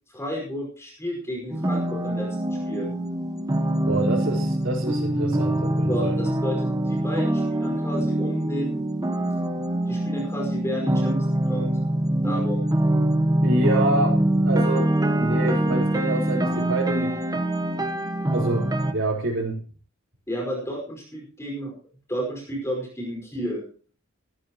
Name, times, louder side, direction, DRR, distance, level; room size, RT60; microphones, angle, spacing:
voice 1, 0.1-2.9 5.9-8.8 9.9-11.7 12.2-12.7 20.3-21.7 22.1-23.6, equal, 15° left, -1 dB, 5.3 m, -32 dB
sound 1, 1.5-18.9, right 1 dB, 20° right, 1.4 m, -24 dB
voice 2, 3.9-6.2 13.4-14.2 14.4-17.2 18.3-19.6, right 2 dB, 60° right, -6 dB, 4.5 m, -27 dB
19.5 x 14.0 x 3.0 m, 0.40 s
head